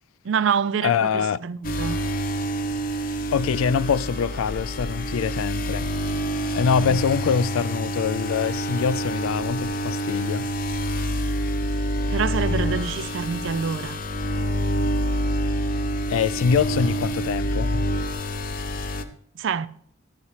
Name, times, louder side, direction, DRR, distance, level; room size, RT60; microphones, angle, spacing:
voice 1, 0.2-2.0 6.8-7.0 12.1-14.0 19.4-19.7, right 6 dB, 65° right, 0.4 m, -26 dB
voice 2, 0.8-1.4 3.3-5.9 6.5-10.5 16.1-17.8, left 6 dB, 85° left, 0.3 m, -24 dB
sound 1, 1.6-19.0, equal, 40° left, 0.7 m, -27 dB
14.0 x 9.6 x 3.2 m
head